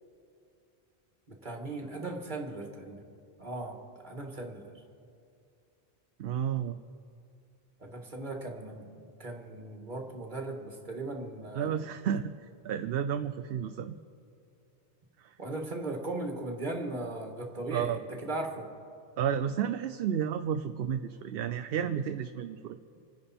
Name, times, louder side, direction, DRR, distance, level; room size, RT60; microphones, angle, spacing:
voice 1, 1.3-3.0 3.4-4.6 7.8-8.8 9.2-11.8 15.4-18.7, right 2 dB, 45° right, 2 dB, 1.9 m, -38 dB
voice 2, 6.2-6.8 11.5-12.3 12.6-14.0 15.2-15.3 17.7-18.0 19.2-22.8, right 8 dB, 65° right, 9 dB, 0.7 m, -31 dB
27.0 x 10.5 x 4.3 m, 2.5 s
omnidirectional pair, 1.1 m